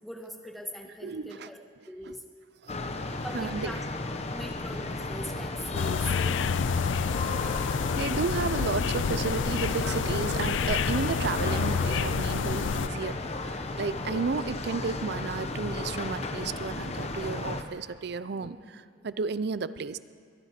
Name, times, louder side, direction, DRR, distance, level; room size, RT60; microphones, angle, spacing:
voice 1, 0.0-1.6 1.9-2.2 3.2-3.8 4.3-6.1 9.8-10.0 18.3-18.7 19.0-19.2, equal, ahead, 2 dB, 1.5 m, -41 dB
voice 2, 1.0-1.5 2.1-2.2 2.6-2.7 3.3-3.7 7.6-13.2 13.4-20.0, right 4 dB, 60° right, 15 dB, 0.5 m, -33 dB
sound 1, 2.7-17.6, left 2 dB, 35° left, 0.9 m, -34 dB
sound 2, 5.7-12.9, left 6 dB, 85° left, 0.4 m, -29 dB
22.0 x 11.0 x 5.8 m, 2.3 s
head